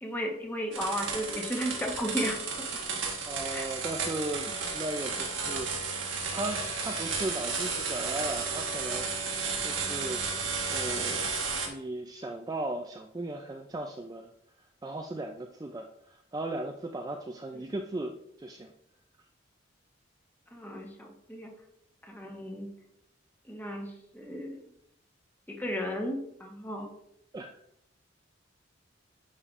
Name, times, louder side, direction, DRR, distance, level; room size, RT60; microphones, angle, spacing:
voice 1, 0.0-2.8 3.4-3.7 10.4-10.5 20.5-21.5 22.0-22.7 23.5-24.6 25.5-26.9, equal, 10° left, 1 dB, 1.0 m, -35 dB
sound 1, 0.7-11.7, right 4 dB, 80° right, 1.4 m, -33 dB
voice 2, 3.3-9.3 9.6-10.4 10.7-11.3 11.7-14.3 14.8-18.7 27.3-27.6, right 2 dB, 20° right, 3 dB, 0.3 m, -37 dB
9.6 x 5.0 x 2.5 m, 0.75 s
head